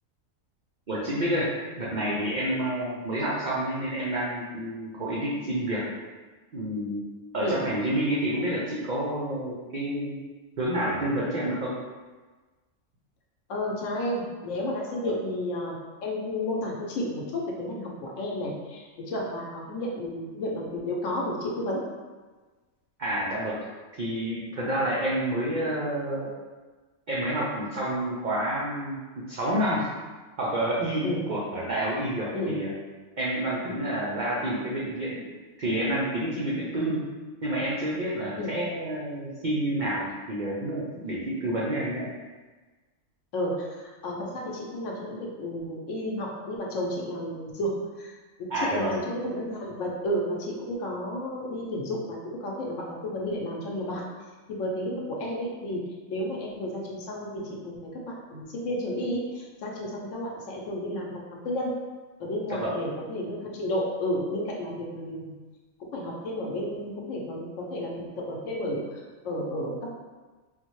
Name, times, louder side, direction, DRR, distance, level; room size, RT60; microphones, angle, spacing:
voice 1, 0.9-5.9 6.5-7.1 7.3-10.2 10.6-11.8 15.0-15.2 23.0-23.7 24.0-26.3 27.1-29.0 29.3-29.9 30.4-32.7 33.2-35.3 35.6-37.0 37.4-42.1 48.5-48.9 62.6-62.7, right 1 dB, 70° right, -6 dB, 0.4 m, -29 dB
voice 2, 13.5-21.8 31.0-31.2 32.3-32.6 38.4-38.5 43.3-48.1 48.4-54.0 54.5-55.8 56.1-61.8 62.2-65.3 65.8-69.9, left 1 dB, 70° left, -2 dB, 1.0 m, -32 dB
3.7 x 2.1 x 3.0 m, 1.3 s
omnidirectional pair, 1.4 m